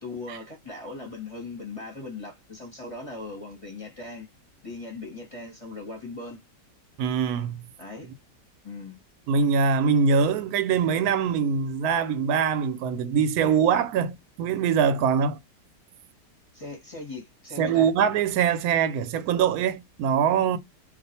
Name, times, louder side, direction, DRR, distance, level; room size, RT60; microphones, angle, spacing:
voice 1, 0.0-4.3 4.6-6.4 7.8-8.1 8.6-9.0 16.5-17.9, left 3 dB, 25° left, 0.8 m, -39 dB
voice 2, 7.0-7.6 9.3-15.4 17.6-20.6, right 6 dB, 70° right, 1.0 m, -23 dB
2.6 x 2.4 x 4.0 m
omnidirectional pair, 1.9 m